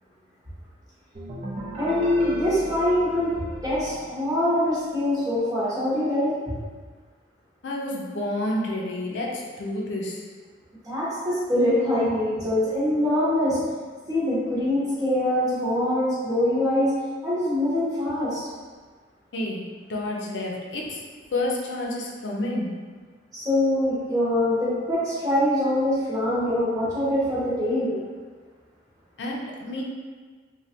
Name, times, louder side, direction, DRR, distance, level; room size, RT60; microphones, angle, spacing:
sound 1, 1.1-4.9, right 1 dB, 35° right, 0.5 m, -37 dB
voice 1, 1.8-3.3 3.6-6.6 10.8-13.6 14.1-16.9 17.2-18.4 23.3-27.9, left 1 dB, 20° right, -9 dB, 0.8 m, -24 dB
voice 2, 7.6-10.2 19.3-21.0 21.3-22.7 29.2-29.8, left 1 dB, 75° left, -2 dB, 0.5 m, -29 dB
3.1 x 2.2 x 2.8 m, 1.5 s
head